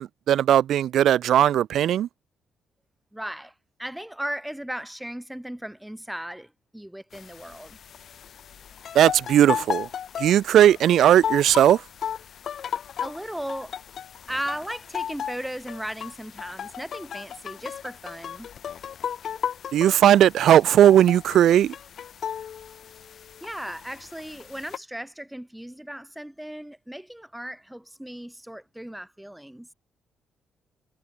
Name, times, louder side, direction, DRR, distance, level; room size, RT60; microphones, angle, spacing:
voice 1, 0.0-2.1 8.9-9.9 10.2-11.8 19.7-21.7, right 11 dB, 70° right, 0.9 m, -18 dB
voice 2, 3.1-3.5 3.8-7.8 13.0-13.8 14.3-18.5 23.4-29.7, right 1 dB, 5° right, 3.3 m, -36 dB
sound 1, 7.1-24.8, left 8 dB, 60° left, 1.3 m, -35 dB
cardioid pair, 90°, 0 cm